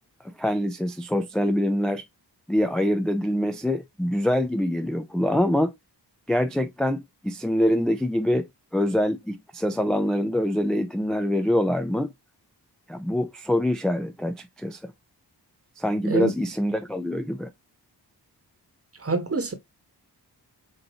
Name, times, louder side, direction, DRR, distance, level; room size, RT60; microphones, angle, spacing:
voice 1, 0.2-2.0 2.5-5.7 6.3-8.5 8.7-12.1 12.9-14.9 15.8-17.5, left 1 dB, ahead, 0.3 m, -25 dB
voice 2, 19.0-19.5, right 3 dB, 35° right, 1.0 m, -26 dB
5.5 x 2.5 x 2.8 m
wide cardioid pair, 100°, 42 cm